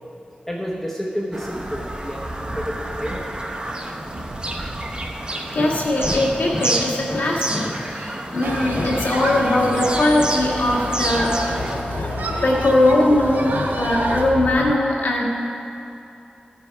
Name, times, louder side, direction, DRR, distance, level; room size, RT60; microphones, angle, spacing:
voice 1, 0.5-3.4, equal, 10° left, -2 dB, 0.9 m, -30 dB
Bird vocalization bird call bird song, 1.3-11.8, right 1 dB, 30° right, 0.8 m, -30 dB
voice 2, 5.5-15.2, left 1 dB, 90° left, -4 dB, 1.6 m, -20 dB
sound 1, 8.4-14.7, left 3 dB, 55° left, 0.4 m, -31 dB
Human group actions, 8.4-14.2, right 2 dB, 85° right, 0.8 m, -29 dB
15.0 x 5.3 x 4.6 m, 2.8 s
wide cardioid pair, 85°, 3 cm